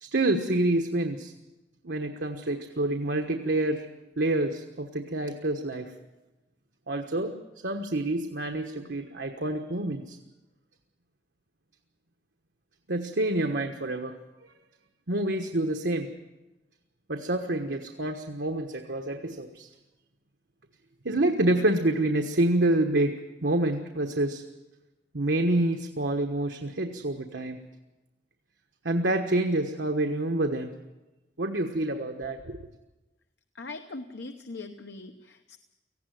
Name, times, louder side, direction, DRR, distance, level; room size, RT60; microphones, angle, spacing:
voice 1, 0.0-1.3 1.8-3.9 4.2-5.9 6.9-7.3 7.6-10.2 12.9-14.1 15.1-16.1 17.1-19.7 21.0-23.1 23.4-24.4 25.1-27.6 28.8-30.7 31.4-32.5, right 1 dB, 85° right, 4 dB, 1.3 m, -27 dB
voice 2, 33.6-35.6, left 3 dB, 85° left, 7 dB, 1.0 m, -41 dB
18.5 x 15.5 x 9.3 m, 1.1 s
head